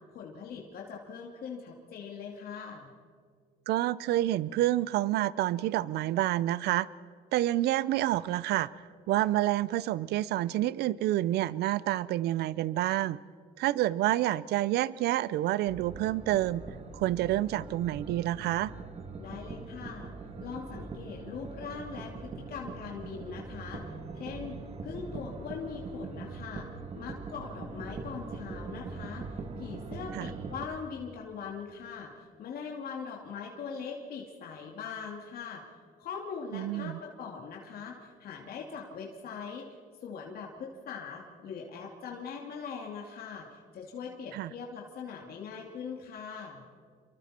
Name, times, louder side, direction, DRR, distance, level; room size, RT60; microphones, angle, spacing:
voice 1, 0.1-2.9 19.2-20.1 20.4-24.6 24.8-26.7 27.0-29.3 29.6-35.6 36.0-39.8 40.0-46.6, left 6 dB, 65° left, -1 dB, 2.6 m, -41 dB
voice 2, 3.7-6.9 7.3-8.7 9.1-13.2 13.6-16.6 16.9-18.7 30.1-30.3 36.5-37.0 44.3-44.5, right 14 dB, 75° right, 19 dB, 0.6 m, -28 dB
sound 1, 15.6-30.7, right 4 dB, 35° right, 1.8 m, -42 dB
29.0 x 24.0 x 4.4 m, 2.1 s
cardioid pair, 110°, 17 cm